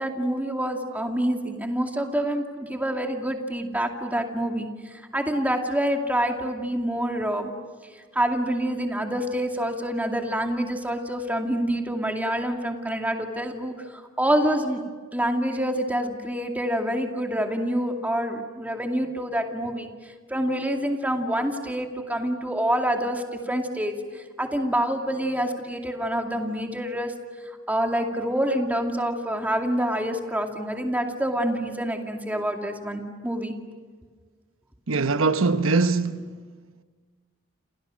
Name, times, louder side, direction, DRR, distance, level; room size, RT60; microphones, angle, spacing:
voice 1, 0.0-7.5 8.1-14.8 15.1-19.9 20.3-27.1 27.7-33.5, equal, 10° right, 2.4 m, -27 dB
voice 2, 34.9-36.3, right 3 dB, 90° right, 1.0 m, -22 dB
29.0 x 28.5 x 6.4 m
head